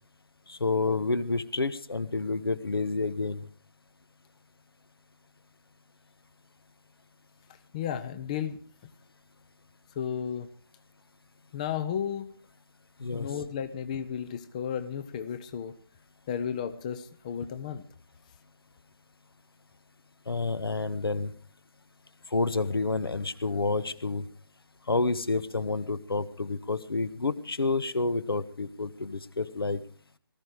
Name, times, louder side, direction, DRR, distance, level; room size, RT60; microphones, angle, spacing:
voice 1, 0.5-3.5 13.0-13.3 20.3-21.3 22.3-24.2 24.9-29.8, left 3 dB, 70° left, 15 dB, 1.6 m, -29 dB
voice 2, 7.7-8.6 9.9-10.5 11.5-12.3 13.1-15.8 16.3-17.8, left 8 dB, 20° left, 11 dB, 0.7 m, -33 dB
19.0 x 14.0 x 4.9 m, 0.41 s
figure-of-eight pair, 160°, 13 cm